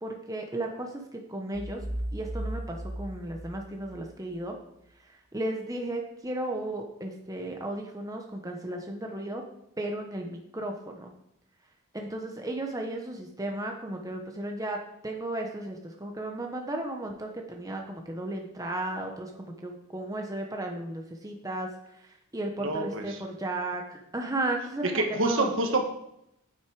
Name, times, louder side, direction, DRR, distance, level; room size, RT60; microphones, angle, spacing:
voice 1, 0.0-1.8 2.1-4.6 5.3-9.4 9.8-11.1 11.9-14.8 15.0-21.7 22.3-25.5, right 1 dB, 15° right, 2 dB, 1.0 m, -34 dB
sound 1, 1.5-4.4, right 1 dB, 80° right, 2.9 m, -36 dB
voice 2, 22.6-23.2 24.9-25.8, right 2 dB, 60° right, 4 dB, 1.4 m, -27 dB
8.9 x 8.3 x 4.8 m, 0.78 s
head